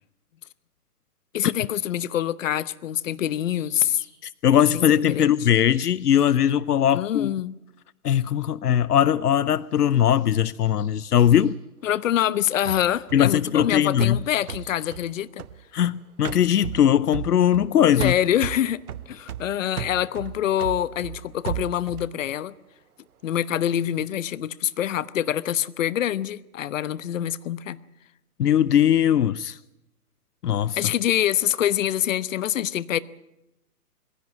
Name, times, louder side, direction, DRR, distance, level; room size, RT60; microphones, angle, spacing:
voice 1, 1.3-4.1 4.7-5.3 6.9-7.5 11.8-15.4 18.0-18.8 19.1-22.5 23.2-27.8 30.8-33.0, left 11 dB, 55° left, 1.0 m, -25 dB
sound 1, 3.5-4.1 4.6-6.4 9.3-11.5 13.8-15.0 16.9-17.2, left 7 dB, 30° left, 5.5 m, -56 dB
voice 2, 4.2-7.3 8.0-11.6 13.1-14.2 15.7-18.1 28.4-29.6 30.4-30.8, left 10 dB, 85° left, 0.7 m, -20 dB
sound 2, 12.6-15.9 16.2-17.7 18.0-22.1, right 10 dB, 70° right, 0.9 m, -35 dB
21.5 x 16.5 x 9.0 m
hypercardioid pair, 140°, 46 cm